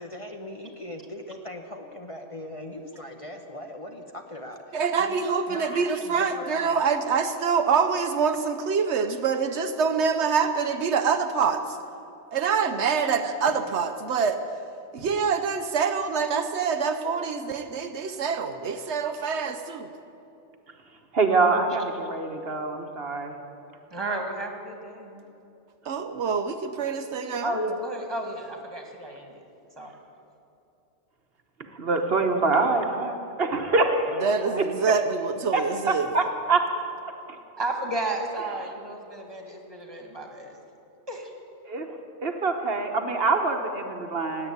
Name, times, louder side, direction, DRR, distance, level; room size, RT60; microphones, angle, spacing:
voice 1, 0.0-5.2 5.5-6.8 34.4-34.9, left 1 dB, 30° left, 3 dB, 1.0 m, -39 dB
voice 2, 4.7-11.8 12.3-14.4 14.9-19.9 25.8-27.6 34.2-36.2, right 5 dB, 75° right, 7 dB, 1.0 m, -25 dB
voice 3, 21.1-23.3 31.8-34.3 34.6-34.7 35.5-36.6 41.7-41.9 42.2-44.5, right 3 dB, 60° right, 4 dB, 1.3 m, -25 dB
voice 4, 23.9-25.2 27.4-29.4 29.8-30.0 37.6-40.6 41.1-41.3, right 1 dB, 20° right, 2 dB, 2.0 m, -32 dB
17.0 x 8.7 x 9.5 m, 2.8 s
omnidirectional pair, 1.2 m